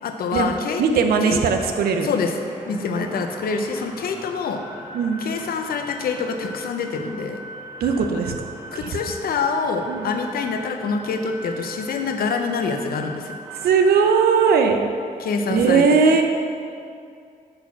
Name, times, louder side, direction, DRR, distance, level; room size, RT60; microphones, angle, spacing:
voice 1, 0.0-0.8 1.3-1.4 2.0-2.3 2.7-4.6 5.2-7.4 8.7-13.4 15.2-15.8, left 5 dB, 75° left, 5 dB, 0.6 m, -26 dB
sound 1, 0.7-14.4, right 1 dB, 20° right, 1.6 m, -40 dB
voice 2, 0.8-2.1 2.7-3.0 4.9-5.3 7.8-8.5 8.7-9.0 9.9-10.1 13.6-14.8 15.5-16.3, right 5 dB, 85° right, 5 dB, 0.5 m, -19 dB
6.4 x 4.1 x 5.7 m, 2.3 s
cardioid pair, 65°, 15 cm